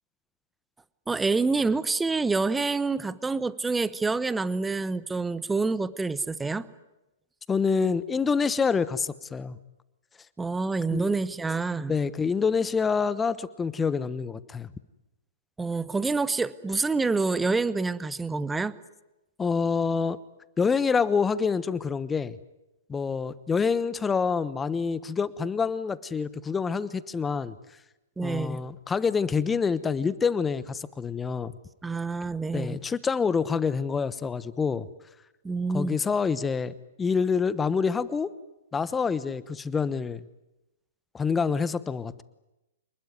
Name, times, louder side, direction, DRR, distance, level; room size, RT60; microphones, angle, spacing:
voice 1, 1.1-6.6 10.4-11.9 15.6-18.7 28.2-28.6 31.8-32.8 35.4-36.0, right 3 dB, 10° right, 17 dB, 1.1 m, -27 dB
voice 2, 7.5-9.6 10.9-11.2 11.9-14.7 19.4-20.2 20.6-22.4 22.9-27.5 28.2-31.5 32.5-34.9 35.7-38.3 38.7-40.3 41.1-42.2, left 5 dB, 15° left, 17 dB, 1.1 m, -27 dB
27.5 x 20.5 x 9.5 m, 0.97 s
hypercardioid pair, 115°, 0 cm